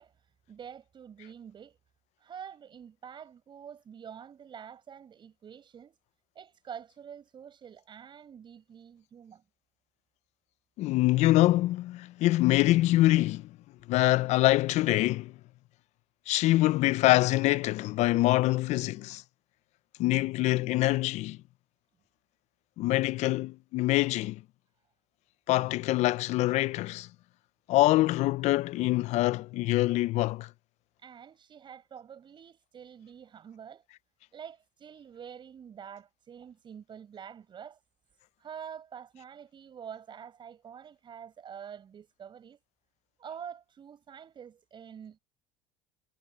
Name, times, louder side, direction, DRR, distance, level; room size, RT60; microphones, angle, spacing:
voice 1, 0.0-1.8 2.2-6.0 6.3-9.4 31.0-33.8 34.3-37.8 38.4-42.6 43.2-45.2, right 8 dB, 35° right, 6.6 m, -47 dB
voice 2, 10.8-13.5 13.9-15.4 16.3-19.2 20.0-21.4 22.8-24.4 25.5-27.1 27.7-30.5, left 17 dB, 55° left, 0.8 m, -25 dB
supercardioid pair, 100°, 14 cm